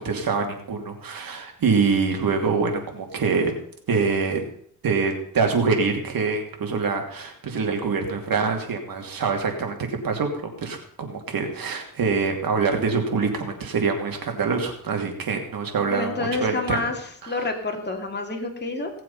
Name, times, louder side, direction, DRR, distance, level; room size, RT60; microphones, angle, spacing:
voice 1, 0.0-3.5 3.9-4.4 4.8-16.8 17.2-17.4, right 4 dB, 70° right, 3 dB, 2.8 m, -25 dB
voice 2, 15.9-18.9, left 3 dB, 30° left, 2 dB, 2.5 m, -28 dB
17.5 x 7.5 x 5.5 m, 0.64 s
cardioid pair, 85°, 36 cm